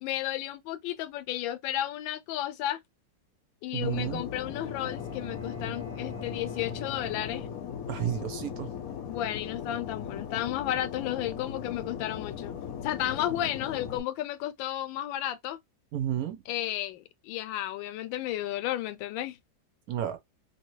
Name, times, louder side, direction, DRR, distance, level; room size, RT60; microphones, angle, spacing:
voice 1, 0.0-2.8 3.6-7.5 9.1-12.5 12.8-15.6 16.5-19.4, left 13 dB, 85° left, 1.3 m, -33 dB
voice 2, 3.7-4.2 7.9-8.7 15.9-16.4 19.9-20.2, right 10 dB, 65° right, 0.9 m, -31 dB
Fixed-wing aircraft airplane, 3.8-14.0, left 8 dB, 65° left, 1.0 m, -38 dB
Bowed string instrument, 4.5-8.4, left 2 dB, 10° left, 0.7 m, -45 dB
2.9 x 2.8 x 3.0 m
omnidirectional pair, 2.0 m